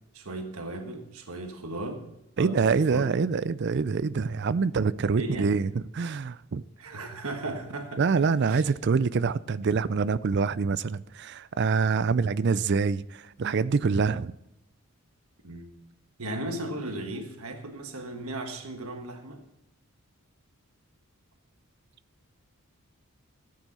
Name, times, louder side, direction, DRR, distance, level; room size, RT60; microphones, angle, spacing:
voice 1, 0.1-2.0 2.4-3.2 5.1-5.5 6.8-8.0 8.4-8.7 15.4-15.7 16.2-19.4, right 2 dB, 75° right, 1.3 m, -36 dB
voice 2, 2.4-6.6 8.0-14.3, right 5 dB, 50° right, 0.4 m, -25 dB
14.0 x 9.1 x 4.1 m
head